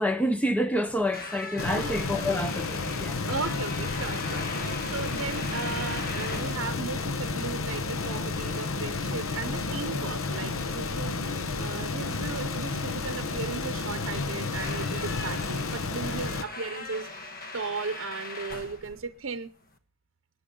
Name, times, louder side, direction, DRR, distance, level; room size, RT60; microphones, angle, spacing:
voice 1, 0.0-3.2, equal, 5° left, 0.6 m, -28 dB
sound 1, 0.9-19.8, left 2 dB, 45° left, 1.4 m, -41 dB
sound 2, 1.6-16.4, left 3 dB, 85° left, 1.0 m, -31 dB
voice 2, 3.3-19.5, right 4 dB, 70° right, 0.7 m, -36 dB
23.0 x 10.0 x 3.7 m
head